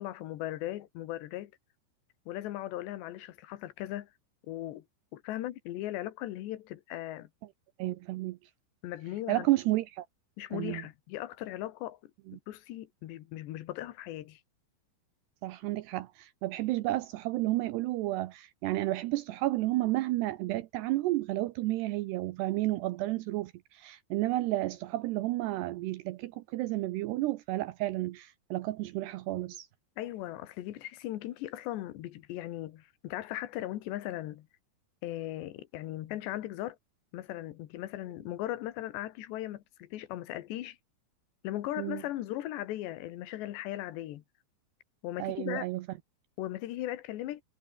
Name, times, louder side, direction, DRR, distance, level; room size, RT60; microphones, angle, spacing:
voice 1, 0.0-1.5 2.3-4.1 4.5-4.8 5.1-7.3 8.8-9.5 10.4-12.0 12.5-14.4 30.0-34.5 35.0-36.8 37.1-40.8 41.4-44.2 45.0-45.7 46.4-47.4, left 14 dB, 70° left, 3.4 m, -38 dB
voice 2, 7.8-8.4 9.3-10.1 10.5-10.8 12.3-12.4 15.4-29.7 41.8-42.0 45.2-45.8, right 17 dB, 80° right, 2.5 m, -31 dB
omnidirectional pair, 5.5 m